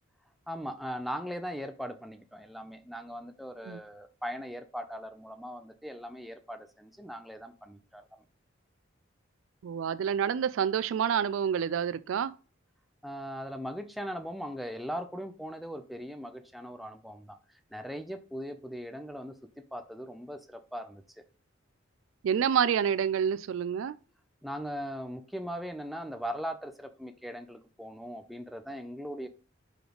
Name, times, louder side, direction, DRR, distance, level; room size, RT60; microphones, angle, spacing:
voice 1, 0.5-8.1 13.0-17.4 17.7-21.0 24.4-29.3, equal, ahead, 0.5 m, -39 dB
voice 2, 9.6-12.3 22.2-23.9, right 8 dB, 70° right, 0.3 m, -28 dB
4.9 x 3.8 x 5.0 m
head